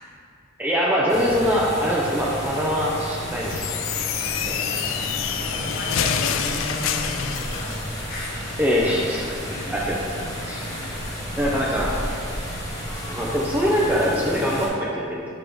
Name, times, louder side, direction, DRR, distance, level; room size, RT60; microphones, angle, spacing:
voice 1, 0.6-3.7 4.5-4.8 5.6-5.7 8.6-10.6 11.4-11.9 13.1-15.2, equal, 10° right, -5 dB, 0.6 m, -23 dB
sound 1, 1.1-14.7, equal, 15° left, 1.4 m, -32 dB
sound 2, 3.4-7.9, left 9 dB, 70° left, 0.3 m, -27 dB
voice 2, 4.3-8.3 9.5-9.7 10.7-10.8, left 1 dB, 45° left, -5 dB, 1.3 m, -34 dB
8.3 x 3.2 x 4.8 m, 2.5 s
head